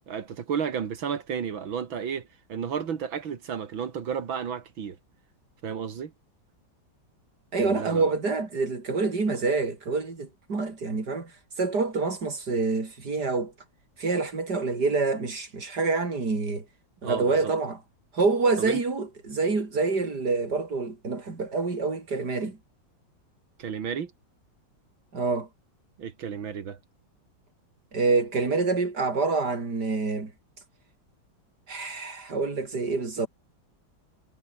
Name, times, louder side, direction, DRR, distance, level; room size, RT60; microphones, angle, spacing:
voice 1, 0.0-5.0 5.6-6.1 7.6-8.1 17.0-17.5 18.6-18.8 23.6-24.1 26.0-26.8, right 7 dB, 85° right, 2.7 m, -32 dB
voice 2, 7.5-11.3 11.6-13.5 14.0-16.6 17.0-17.8 18.1-22.6 25.1-25.5 27.9-30.3 31.7-33.3, right 3 dB, 55° right, 4.7 m, -27 dB
omnidirectional pair, 2.1 m